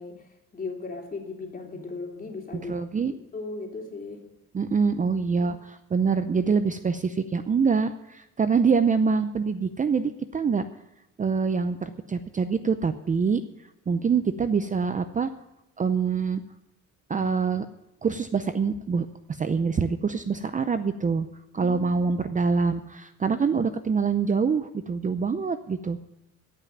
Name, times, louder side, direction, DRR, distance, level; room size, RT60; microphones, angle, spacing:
voice 1, 0.0-2.8 3.1-4.2 14.1-14.3 21.6-22.2, left 3 dB, 30° left, 1 dB, 3.0 m, -37 dB
voice 2, 2.7-3.1 4.5-10.6 11.2-13.4 13.9-15.3 15.8-16.4 17.1-17.7 18.0-21.3 21.5-26.0, right 5 dB, 25° right, 10 dB, 0.6 m, -25 dB
17.0 x 5.9 x 9.2 m, 0.91 s
cardioid pair, 105°, 30 cm